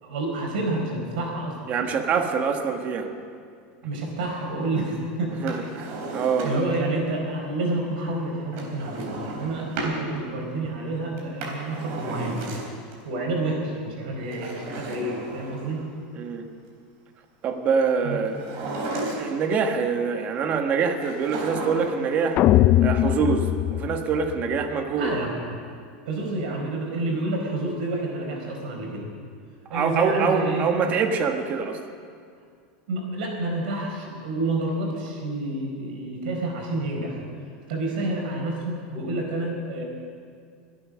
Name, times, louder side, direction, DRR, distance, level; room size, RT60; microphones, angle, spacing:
voice 1, 0.0-1.7 3.8-5.5 6.4-12.4 13.0-15.8 18.0-18.2 24.9-25.4 26.0-29.1 29.7-30.7 32.9-37.2 37.7-39.8, right 2 dB, 80° right, 0 dB, 4.7 m, -29 dB
voice 2, 1.7-3.1 5.4-6.5 16.2-16.5 17.4-18.4 19.1-22.4 22.8-25.1 29.7-31.8, right 5 dB, 30° right, 5 dB, 1.4 m, -25 dB
Drawer open or close, 5.3-6.8 8.5-10.0 11.2-12.9 14.2-15.8 18.3-19.5 21.0-22.1 22.3-22.4, right 2 dB, 50° right, 3.9 m, -34 dB
sound 1, 22.4-24.7, left 13 dB, 35° left, 0.4 m, -20 dB
24.0 x 9.0 x 6.3 m, 2.2 s
supercardioid pair, 150°, 5 cm